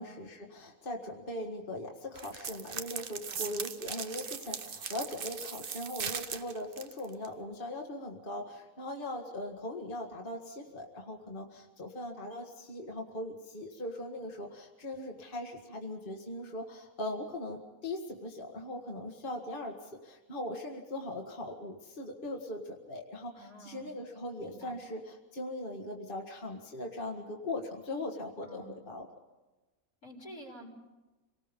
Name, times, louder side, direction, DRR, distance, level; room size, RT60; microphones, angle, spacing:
voice 1, 0.0-29.1, left 1 dB, 40° left, 1 dB, 1.9 m, -40 dB
sound 1, 2.2-7.3, right 7 dB, 45° right, 0.9 m, -39 dB
voice 2, 3.3-3.7 23.4-23.9 24.4-24.8 28.4-28.8 30.0-30.7, equal, 80° left, -1 dB, 4.9 m, -50 dB
27.5 x 19.0 x 5.4 m, 1.1 s
omnidirectional pair, 1.5 m